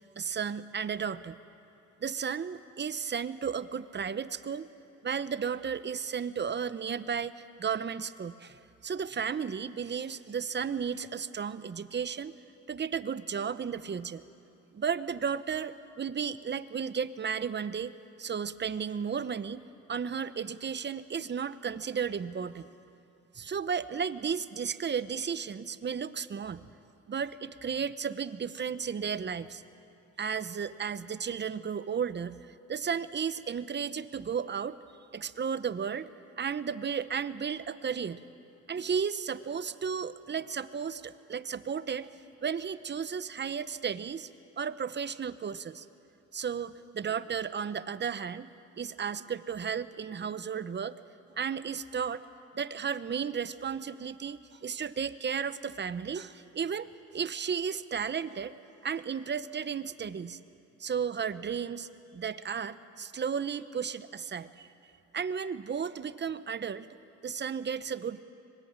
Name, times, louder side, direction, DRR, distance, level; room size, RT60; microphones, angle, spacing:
voice 1, 0.2-1.4 2.0-4.7 5.0-12.4 12.7-14.2 14.7-19.6 19.9-22.7 23.3-26.6 27.1-29.6 30.2-34.8 35.1-36.1 36.4-38.2 38.7-44.3 44.6-45.9 46.3-48.5 48.8-51.0 51.4-52.2 52.5-58.6 58.8-60.4 60.8-64.7 65.1-66.9 67.2-68.2, right 7 dB, 35° right, 13 dB, 0.9 m, -34 dB
25.5 x 21.5 x 8.9 m, 2.7 s
cardioid pair, 90°, 30 cm